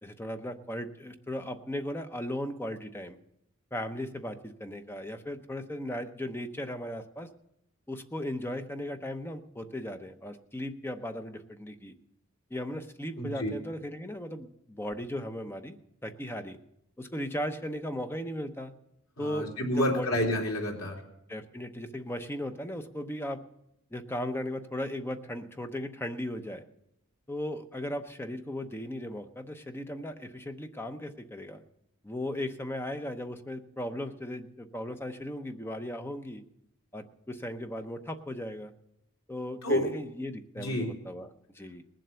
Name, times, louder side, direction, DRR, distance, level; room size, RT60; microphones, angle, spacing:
voice 1, 0.0-3.2 3.7-7.3 7.9-11.9 12.5-15.8 16.0-16.6 17.0-18.7 19.2-20.1 21.3-23.4 23.9-26.6 27.3-31.6 32.0-36.4 36.9-38.7 39.3-41.8, left 1 dB, 10° left, 7 dB, 0.8 m, -37 dB
voice 2, 13.2-13.5 19.2-21.0 39.6-39.9 40.6-40.9, equal, 70° left, -1 dB, 3.4 m, -29 dB
19.5 x 7.6 x 6.9 m, 0.79 s
head